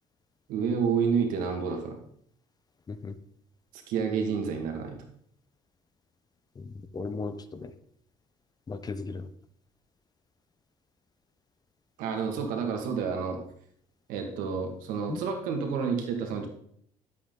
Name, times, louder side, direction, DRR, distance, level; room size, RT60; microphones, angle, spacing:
voice 1, 0.5-2.0 3.7-5.0 12.0-13.4 14.1-16.5, right 6 dB, 85° right, 3 dB, 2.3 m, -29 dB
voice 2, 6.6-7.7 8.7-9.3 15.1-15.2, left 4 dB, 30° left, 11 dB, 0.9 m, -36 dB
12.0 x 8.2 x 4.0 m, 0.65 s
cardioid pair, 105°, 14 cm